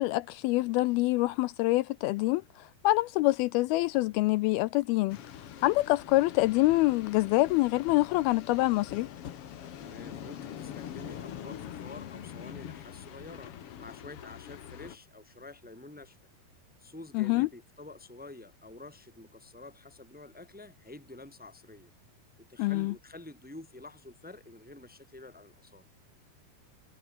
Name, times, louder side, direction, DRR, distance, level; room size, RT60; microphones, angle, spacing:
voice 1, 0.0-5.2 5.6-9.1 17.2-17.5 22.6-22.9, left 19 dB, 80° left, 2.4 m, -26 dB
sound 1, 5.1-15.0, left 10 dB, 60° left, 1.5 m, -44 dB
voice 2, 9.8-13.5 13.8-16.2 16.8-21.9 22.4-25.9, left 2 dB, 5° right, 1.9 m, -48 dB
omnidirectional pair, 4.6 m